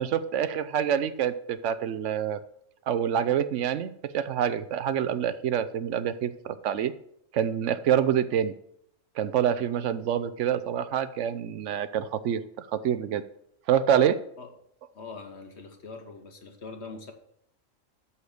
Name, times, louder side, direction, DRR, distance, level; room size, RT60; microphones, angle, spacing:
voice 1, 0.0-2.4 2.9-6.9 7.3-8.5 9.2-13.2 13.7-14.2, right 9 dB, 75° right, 13 dB, 1.0 m, -26 dB
voice 2, 14.9-17.1, left 4 dB, 60° left, 5 dB, 1.6 m, -42 dB
12.5 x 4.3 x 6.8 m, 0.72 s
omnidirectional pair, 1.3 m